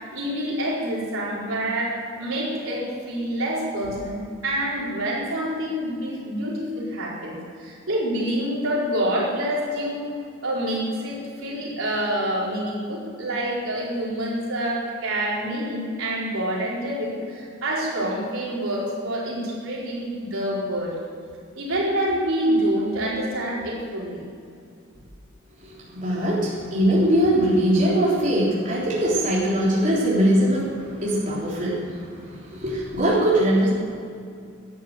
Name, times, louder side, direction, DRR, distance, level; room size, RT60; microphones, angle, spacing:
voice 1, 0.0-10.1 10.4-20.9 21.6-24.3, right 1 dB, 80° right, -5 dB, 4.6 m, -27 dB
voice 2, 25.6-33.7, right 1 dB, 40° right, -7 dB, 3.6 m, -21 dB
13.0 x 10.0 x 7.9 m, 2.4 s
head